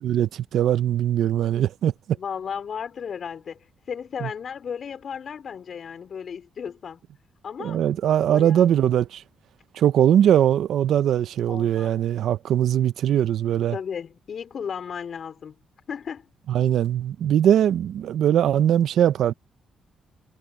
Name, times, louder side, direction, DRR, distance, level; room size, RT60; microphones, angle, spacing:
voice 1, 0.0-1.9 4.2-4.3 7.6-9.2 9.7-13.8 16.5-19.3, right 10 dB, 70° right, 0.8 m, -21 dB
voice 2, 2.1-7.0 7.4-8.7 11.5-11.9 13.7-15.6 15.9-16.3, left 7 dB, 55° left, 4.4 m, -35 dB
cardioid pair, 90°, 0 cm